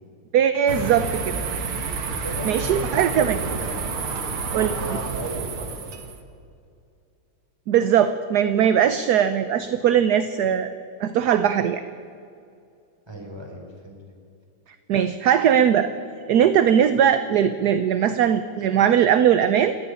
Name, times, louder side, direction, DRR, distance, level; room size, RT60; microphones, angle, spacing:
voice 1, 0.3-1.4 2.4-3.4 4.5-4.7 7.7-10.7 11.0-11.8 14.9-15.9 16.3-19.8, right 9 dB, 65° right, 11 dB, 1.0 m, -20 dB
sound 1, 0.7-6.2, right 4 dB, 90° right, 2.5 m, -29 dB
voice 2, 2.1-6.0 13.1-14.0, equal, 10° right, 0 dB, 4.1 m, -36 dB
28.5 x 11.5 x 9.7 m, 2.4 s
omnidirectional pair, 2.3 m